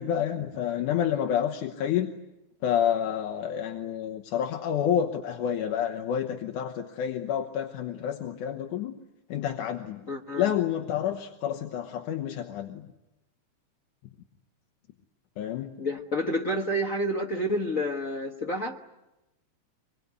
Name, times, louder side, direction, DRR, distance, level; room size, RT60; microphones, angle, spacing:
voice 1, 0.0-2.1 2.6-8.9 9.3-10.0 10.4-12.9 15.4-15.7, left 9 dB, 80° left, 4 dB, 2.6 m, -29 dB
voice 2, 10.1-10.5 15.8-18.8, equal, 55° left, 1 dB, 0.9 m, -29 dB
25.0 x 22.5 x 9.5 m, 0.96 s
omnidirectional pair, 3.6 m